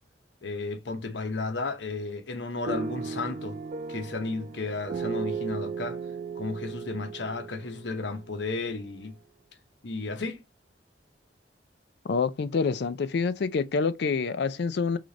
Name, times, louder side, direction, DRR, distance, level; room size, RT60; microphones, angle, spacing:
voice 1, 0.4-3.6 3.9-6.0 6.4-9.1 9.8-10.4, left 3 dB, 85° left, 0.8 m, -33 dB
sound 1, 2.7-8.7, right 5 dB, 45° right, 0.3 m, -36 dB
voice 2, 12.0-15.0, left 5 dB, 65° left, 0.4 m, -27 dB
3.7 x 3.2 x 3.9 m
head